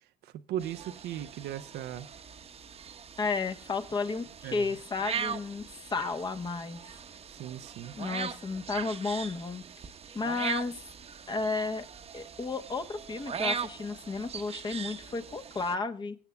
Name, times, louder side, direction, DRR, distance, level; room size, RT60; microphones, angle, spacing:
voice 1, 0.2-2.1 4.4-4.7 7.4-7.9, right 11 dB, 75° right, 0.6 m, -37 dB
sound 1, 0.6-15.8, right 6 dB, 35° right, 0.9 m, -40 dB
voice 2, 3.2-6.8 7.9-9.6 10.1-10.8 11.3-11.9 12.1-16.2, left 4 dB, 25° left, 1.0 m, -33 dB
22.5 x 8.2 x 2.3 m
cardioid pair, 110°, 17 cm